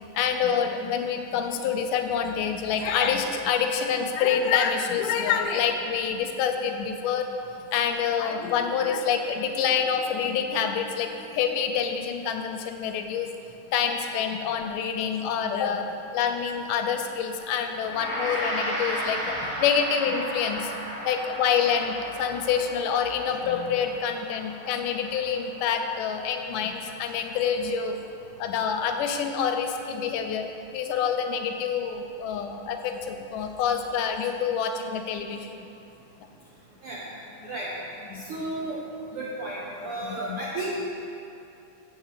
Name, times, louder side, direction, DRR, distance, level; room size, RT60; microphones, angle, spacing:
voice 1, 0.0-7.3 7.7-13.3 13.7-15.9 16.1-20.7 21.1-27.9 28.4-35.5 38.1-38.2 40.1-40.4, left 7 dB, 85° left, 5 dB, 2.2 m, -27 dB
Gong, 17.8-27.2, equal, 55° right, 2.9 m, -35 dB
voice 2, 38.1-38.8 39.1-40.9, right 1 dB, 75° right, -4 dB, 1.2 m, -33 dB
8.1 x 4.8 x 7.3 m, 2.7 s
omnidirectional pair, 3.6 m